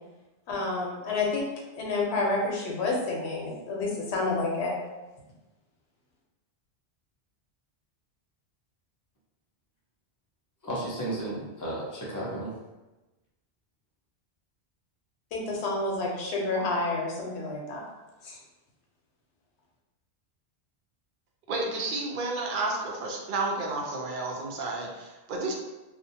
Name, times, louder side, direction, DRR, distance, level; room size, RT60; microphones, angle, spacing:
voice 1, 0.5-1.4 1.8-4.7 15.3-17.8 18.2-18.4, left 3 dB, 80° left, -2 dB, 0.9 m, -29 dB
voice 2, 10.6-12.5, right 1 dB, 25° left, -6 dB, 0.4 m, -33 dB
voice 3, 21.5-25.5, right 2 dB, 60° right, 0 dB, 0.6 m, -31 dB
2.5 x 2.1 x 2.6 m, 1.1 s
omnidirectional pair, 1.1 m